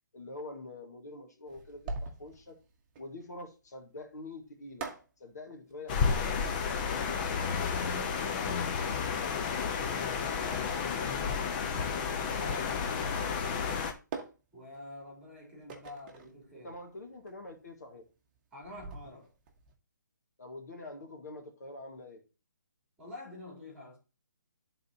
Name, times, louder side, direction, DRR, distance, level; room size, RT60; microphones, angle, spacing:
voice 1, 0.1-2.6 3.0-4.9 5.2-6.4 16.6-18.0 20.4-22.2, left 2 dB, 60° left, 1.7 m, -45 dB
sound 1, 1.4-19.7, right 3 dB, 30° right, 1.1 m, -47 dB
sound 2, 5.9-13.9, left 6 dB, 30° left, 0.8 m, -31 dB
voice 2, 9.7-14.0 14.5-16.7 18.5-19.3 23.0-24.0, left 2 dB, 10° right, 3.3 m, -48 dB
12.0 x 4.0 x 2.8 m
figure-of-eight pair, 140°, 10 cm